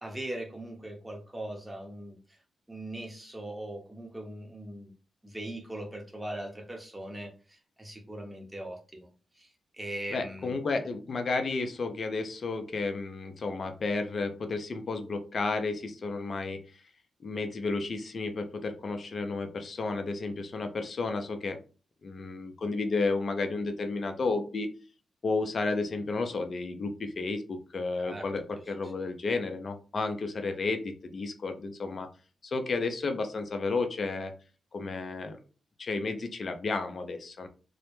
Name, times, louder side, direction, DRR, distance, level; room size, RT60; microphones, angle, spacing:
voice 1, 0.0-2.2 2.7-4.9 5.2-9.1 9.4-9.5 9.8-10.5 28.0-28.3, right 1 dB, 15° right, 1 dB, 0.8 m, -40 dB
voice 2, 10.1-16.6 17.2-21.6 22.0-24.7 25.2-32.1 32.4-34.3 34.7-35.4 35.8-37.5, left 3 dB, 55° left, 6 dB, 0.5 m, -32 dB
2.1 x 2.1 x 3.0 m, 0.35 s
cardioid pair, 60°, 0 cm